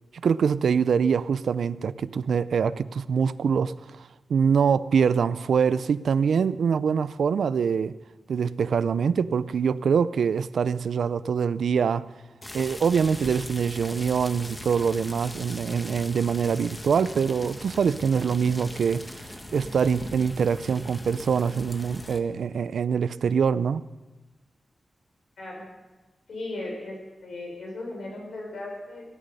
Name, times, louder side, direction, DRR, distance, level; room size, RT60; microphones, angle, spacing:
voice 1, 0.2-3.7 4.3-7.9 8.3-12.1 12.5-19.0 19.5-23.8, right 6 dB, 85° right, 16 dB, 0.4 m, -24 dB
sound 1, 12.4-22.2, left 1 dB, 20° left, 1.5 m, -40 dB
voice 2, 26.3-27.0 27.2-29.0, left 2 dB, 80° left, -1 dB, 6.3 m, -36 dB
16.5 x 13.0 x 5.5 m, 1.2 s
cardioid pair, 75°, 0 cm